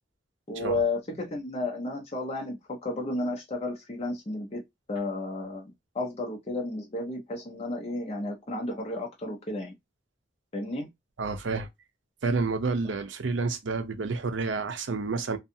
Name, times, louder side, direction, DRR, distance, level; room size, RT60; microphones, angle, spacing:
voice 1, 0.5-4.6 4.9-9.7 10.5-10.9, left 2 dB, 35° left, 0.6 m, -32 dB
voice 2, 11.2-11.7 12.2-15.4, right 4 dB, 70° right, 0.6 m, -29 dB
2.6 x 2.3 x 2.6 m
head